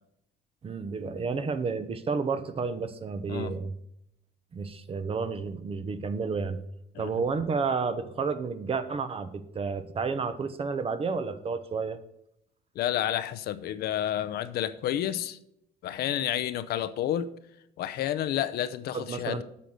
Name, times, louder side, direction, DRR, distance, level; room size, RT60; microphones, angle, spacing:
voice 1, 0.6-3.7 4.5-6.6 7.0-12.0 18.9-19.4, right 5 dB, 35° right, 0.9 m, -31 dB
voice 2, 12.8-15.4 15.8-17.3 17.8-19.4, left 11 dB, 70° left, 0.7 m, -30 dB
8.4 x 5.8 x 6.3 m
cardioid pair, 110°, 17 cm